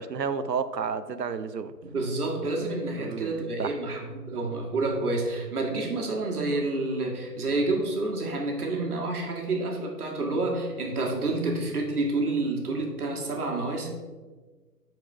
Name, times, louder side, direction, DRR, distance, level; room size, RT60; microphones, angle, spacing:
voice 1, 0.0-1.7 3.0-3.8, right 6 dB, 80° right, 0.8 m, -31 dB
voice 2, 1.8-13.9, right 2 dB, 65° right, 2.0 m, -29 dB
9.7 x 4.7 x 4.8 m
figure-of-eight pair, 140°, 48 cm